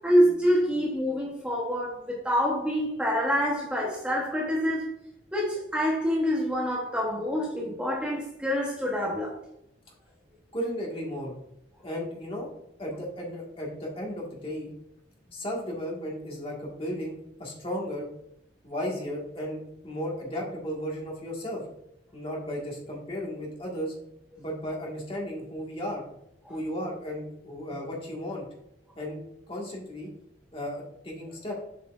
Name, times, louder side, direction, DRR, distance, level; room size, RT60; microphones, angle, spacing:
voice 1, 0.0-4.9 5.3-9.3, equal, 5° right, -3 dB, 1.0 m, -26 dB
voice 2, 10.5-11.4 11.8-12.5 12.8-14.7 15.3-18.1 18.6-21.6 22.1-23.9 24.4-26.0 26.5-28.5 29.0-29.2 29.5-30.1 30.5-31.5, equal, 30° left, -2 dB, 1.7 m, -34 dB
7.1 x 5.8 x 2.5 m, 0.80 s
head